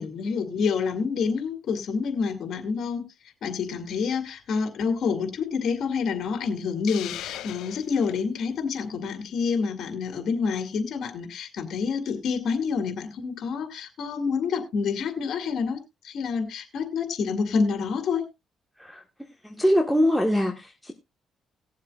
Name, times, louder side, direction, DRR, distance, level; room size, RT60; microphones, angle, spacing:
voice 1, 0.0-3.0 3.4-18.3, left 5 dB, 70° left, 7 dB, 2.2 m, -28 dB
Hiss, 6.9-8.2, left 13 dB, 85° left, 0.5 m, -38 dB
voice 2, 19.4-20.9, equal, ahead, 2 dB, 1.5 m, -23 dB
19.5 x 7.4 x 2.5 m, 0.22 s
cardioid pair, 90°, 0 cm